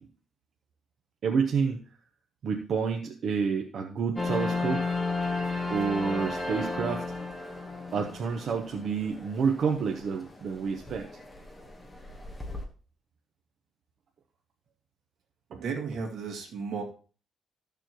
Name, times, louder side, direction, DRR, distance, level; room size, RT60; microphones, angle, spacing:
voice 1, 1.2-1.8 2.4-4.8 5.7-7.0 7.9-11.1 15.5-15.6, right 5 dB, 50° right, 3 dB, 0.9 m, -29 dB
sound 1, 4.2-12.6, left 3 dB, 10° left, 1.3 m, -34 dB
voice 2, 15.5-16.8, right 5 dB, 75° right, 1 dB, 2.2 m, -34 dB
13.0 x 7.0 x 3.0 m, 0.38 s
cardioid pair, 165°, 0 cm